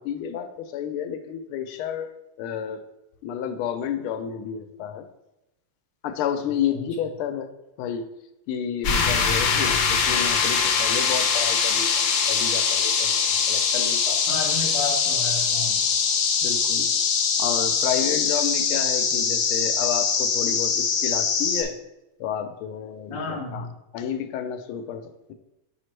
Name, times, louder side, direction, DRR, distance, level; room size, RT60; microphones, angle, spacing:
voice 1, 0.0-2.1 2.4-2.8 3.2-5.1 6.0-7.5 7.8-8.1 8.5-11.9 12.3-14.4 16.4-16.9 17.4-21.8 22.2-23.7 23.9-25.3, left 8 dB, 85° left, 9 dB, 1.5 m, -30 dB
sound 1, 8.8-21.6, left 6 dB, 70° left, 1.4 m, -22 dB
voice 2, 14.3-15.8 23.1-23.7, left 3 dB, 35° left, -1 dB, 0.4 m, -32 dB
6.0 x 5.0 x 3.2 m, 0.94 s
omnidirectional pair, 2.3 m